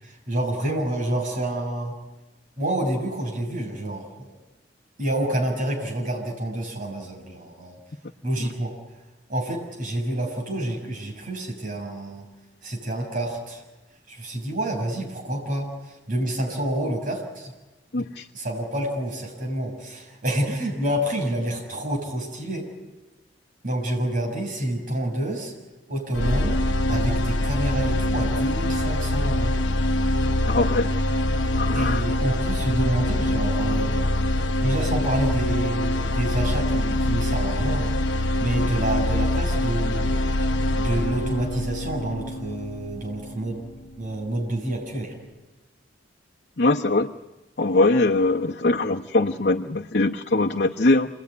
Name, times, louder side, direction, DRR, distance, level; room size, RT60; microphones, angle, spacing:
voice 1, 0.0-1.9 2.6-4.3 5.0-7.8 8.2-8.7 9.3-12.3 12.6-13.6 14.1-17.5 18.3-22.7 23.6-25.5 25.9-26.6 26.9-29.5 31.7-33.9 34.6-37.9 38.4-40.1 40.7-43.6 44.0-45.1, right 1 dB, 50° right, 1 dB, 6.8 m, -28 dB
voice 2, 17.9-18.3 30.5-30.9 31.6-32.0 46.6-47.1 47.6-51.1, left 2 dB, 65° left, 0 dB, 1.0 m, -22 dB
sound 1, 26.1-44.2, left 1 dB, 90° left, 1.0 m, -24 dB
28.5 x 20.5 x 9.7 m, 1.1 s
head